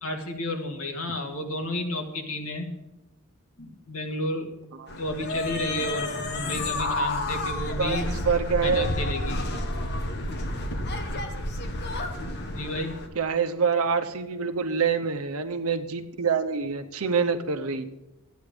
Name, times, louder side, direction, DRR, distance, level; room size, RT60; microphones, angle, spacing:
voice 1, 0.0-2.7 3.6-4.5 5.0-8.0 8.6-9.4 12.5-13.0, left 1 dB, 80° left, 3 dB, 2.0 m, -32 dB
sound 1, 4.9-13.1, left 1 dB, 50° left, 1.3 m, -30 dB
voice 2, 7.8-8.9 13.1-17.8, right 5 dB, 85° right, 8 dB, 0.9 m, -26 dB
12.5 x 9.3 x 5.0 m, 0.98 s
head